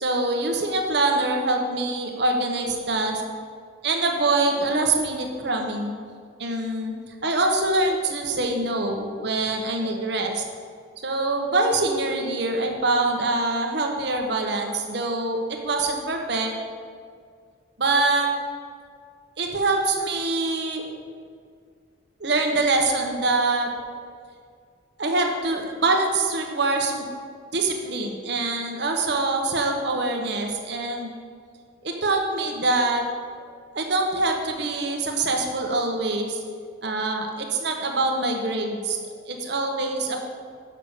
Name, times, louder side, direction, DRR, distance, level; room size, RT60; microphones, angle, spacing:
voice 1, 0.0-3.2 3.8-5.9 6.4-6.9 7.2-10.4 11.0-16.5 17.8-18.3 19.4-20.8 22.2-23.7 25.0-27.1 27.5-31.1 31.8-33.0 33.7-36.4 36.8-39.0 39.3-40.2, right 2 dB, 60° right, 2 dB, 1.1 m, -24 dB
6.7 x 5.8 x 6.6 m, 2.1 s
head